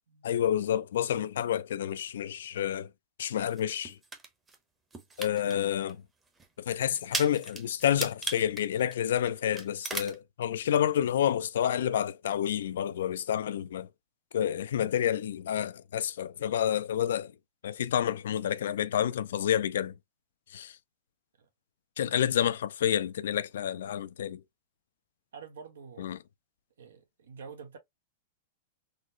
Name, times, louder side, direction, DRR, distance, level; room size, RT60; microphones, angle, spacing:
voice 1, 0.2-2.9 3.2-4.0 5.2-6.0 6.6-13.9 14.3-17.3 17.6-20.0 20.5-20.8 22.0-24.4 26.0-26.2, left 10 dB, 80° left, 0.4 m, -29 dB
sound 1, 3.5-4.6 4.9-5.5 5.9-6.0 6.4-6.5 7.0-9.3 9.5-10.2, right 3 dB, 15° right, 0.8 m, -36 dB
voice 2, 25.3-26.1 26.8-27.8, right 6 dB, 85° right, 1.2 m, -47 dB
3.8 x 2.0 x 2.9 m
hypercardioid pair, 130°, 0 cm